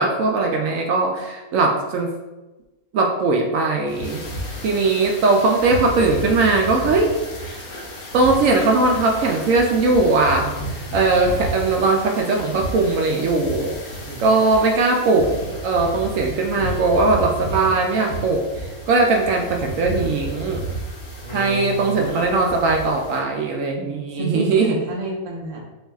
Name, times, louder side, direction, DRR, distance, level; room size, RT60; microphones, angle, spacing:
voice 1, 0.0-2.1 2.9-4.2 4.6-7.1 7.4-7.6 8.1-13.7 14.2-20.7 21.3-24.8, right 3 dB, 70° right, 1 dB, 0.9 m, -19 dB
sound 1, 3.9-23.2, right 1 dB, 45° left, 0.8 m, -32 dB
voice 2, 14.1-14.5 21.2-22.3 24.2-25.6, right 1 dB, 40° right, -2 dB, 0.5 m, -29 dB
5.4 x 2.6 x 2.3 m, 1.1 s
omnidirectional pair, 1.6 m